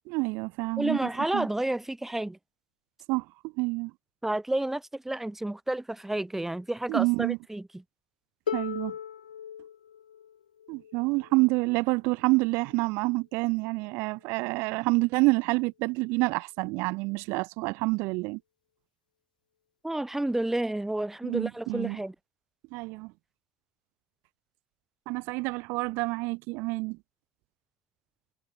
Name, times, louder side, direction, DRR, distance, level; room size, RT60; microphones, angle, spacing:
voice 1, 0.1-1.0 1.3-1.5 3.1-3.2 3.6-3.9 6.9-7.4 8.5-8.9 10.7-18.4 21.2-22.0 22.7-23.1 25.1-27.0, right 26 dB, 60° right, 0.6 m, -28 dB
voice 2, 0.8-2.4 4.2-7.8 19.8-22.1, right 1 dB, 5° right, 1.7 m, -30 dB
Harp, 8.5-14.3 15.3-15.4, left 9 dB, 80° left, 0.9 m, -40 dB
figure-of-eight pair, 65°, 4 cm